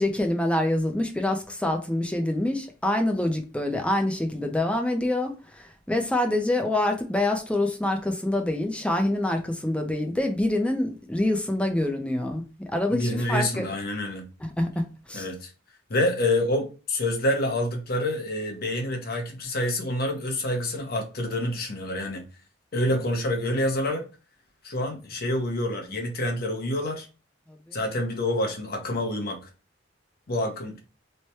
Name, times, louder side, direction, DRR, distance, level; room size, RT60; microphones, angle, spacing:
voice 1, 0.0-13.7 14.4-15.3 27.7-27.8, left 1 dB, 5° left, 0.5 m, -26 dB
voice 2, 12.9-14.3 15.1-15.5 15.9-22.2 22.7-24.1 24.6-27.1 27.7-29.4 30.3-30.8, left 1 dB, 50° left, 0.9 m, -27 dB
3.2 x 2.1 x 4.1 m
head